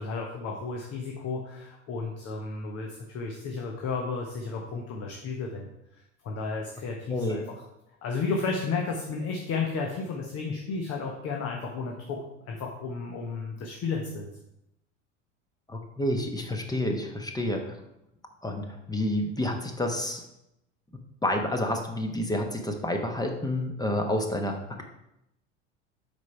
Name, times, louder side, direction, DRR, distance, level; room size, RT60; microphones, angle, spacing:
voice 1, 0.0-5.7 6.2-7.4 8.0-12.2 12.5-14.3, left 4 dB, 40° left, 1 dB, 1.2 m, -33 dB
voice 2, 7.1-7.4 15.7-17.8 18.4-20.2 20.9-24.8, left 1 dB, 10° left, 4 dB, 1.1 m, -29 dB
8.0 x 5.4 x 4.5 m, 0.85 s
figure-of-eight pair, 70°, 38 cm